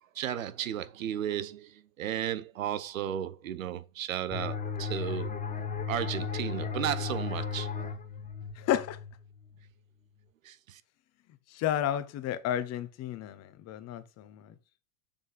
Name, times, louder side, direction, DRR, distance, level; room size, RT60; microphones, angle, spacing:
voice 1, 0.1-5.3 5.9-7.7 10.4-10.8, right 11 dB, 80° right, 0.9 m, -34 dB
sound 1, 4.3-9.7, left 6 dB, 20° left, 2.0 m, -36 dB
voice 2, 8.6-9.0 11.5-14.5, left 11 dB, 40° left, 1.1 m, -32 dB
6.9 x 4.1 x 5.2 m
hypercardioid pair, 95°, 40 cm